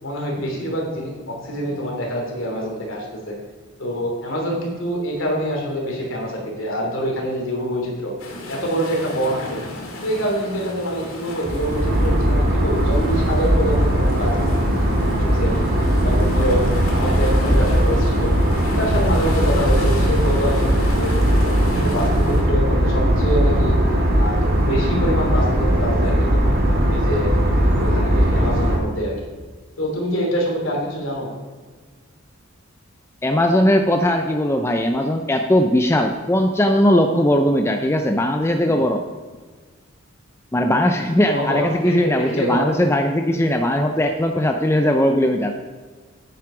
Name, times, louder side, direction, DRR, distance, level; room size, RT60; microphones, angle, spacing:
voice 1, 0.0-3.4 3.8-8.1 8.5-9.6 10.0-14.9 15.2-15.7 16.0-16.7 16.9-18.3 18.8-23.7 24.1-26.5 26.9-27.3 27.7-29.3 29.8-31.3 41.3-42.8, equal, 65° left, -1 dB, 3.1 m, -25 dB
sound 1, 8.2-22.4, left 2 dB, 85° left, 2.2 m, -35 dB
sound 2, 11.4-28.8, equal, 50° right, 1.9 m, -19 dB
voice 2, 33.2-39.0 40.5-45.5, left 1 dB, 10° left, 4 dB, 0.5 m, -19 dB
9.5 x 9.3 x 5.0 m, 1.4 s
head